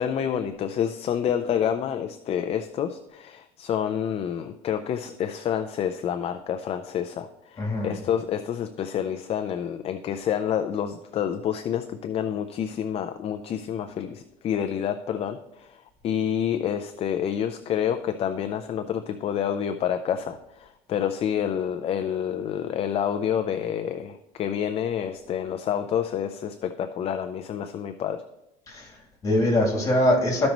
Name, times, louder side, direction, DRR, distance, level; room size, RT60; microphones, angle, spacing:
voice 1, 0.0-28.2, left 9 dB, 40° left, 7 dB, 0.5 m, -28 dB
voice 2, 7.6-7.9 28.7-30.5, left 1 dB, 25° left, -1 dB, 3.0 m, -23 dB
14.0 x 5.3 x 3.0 m, 0.91 s
cardioid pair, 130°, 15 cm